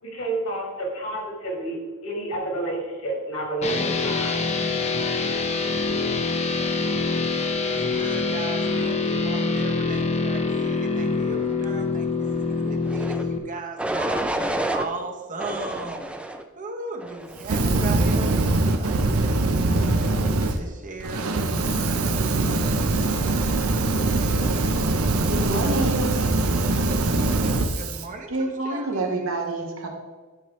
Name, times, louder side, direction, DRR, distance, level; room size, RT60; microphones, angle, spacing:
voice 1, 0.0-4.5, right 2 dB, 75° left, -2 dB, 2.6 m, -30 dB
sound 1, 3.6-13.4, left 3 dB, 30° left, 0.7 m, -25 dB
voice 2, 7.6-12.1 12.6-14.2 14.7-16.1 16.6-19.4 20.6-21.3 27.7-29.3, right 3 dB, 40° right, 3 dB, 1.0 m, -37 dB
sound 2, 12.8-13.2 13.8-14.9 15.4-16.4 17.0-17.4, right 1 dB, 5° right, 0.4 m, -28 dB
Fire, 17.4-20.6 21.0-28.0, right 2 dB, 90° right, 0.8 m, -22 dB
voice 3, 25.3-26.3 28.3-29.9, right 2 dB, 70° right, 1 dB, 1.4 m, -27 dB
10.5 x 5.9 x 3.2 m, 1.3 s
head